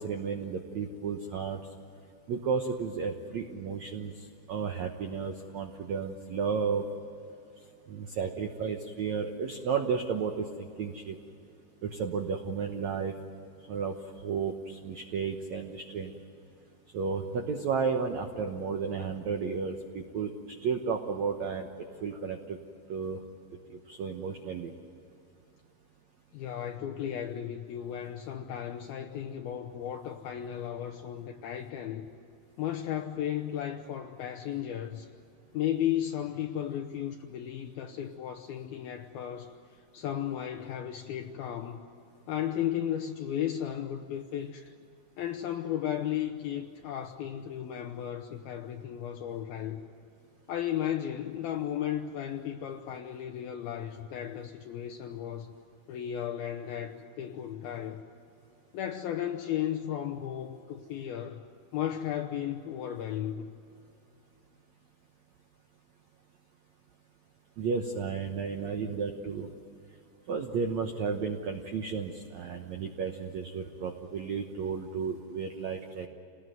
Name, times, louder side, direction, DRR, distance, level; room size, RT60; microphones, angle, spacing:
voice 1, 0.0-1.6 2.3-4.1 4.5-6.8 7.9-11.2 11.8-13.1 13.7-14.0 14.2-16.1 16.9-21.7 22.0-22.6 22.9-23.2 23.7-24.7 67.6-69.5 70.3-76.1, right 5 dB, 80° right, 4 dB, 1.6 m, -33 dB
voice 2, 26.3-32.1 32.6-35.1 35.5-41.8 42.3-44.7 45.2-49.8 50.5-55.5 55.9-58.0 58.7-61.4 61.7-63.5, left 10 dB, 75° left, 4 dB, 2.4 m, -34 dB
28.5 x 19.5 x 9.3 m, 2.7 s
omnidirectional pair, 5.0 m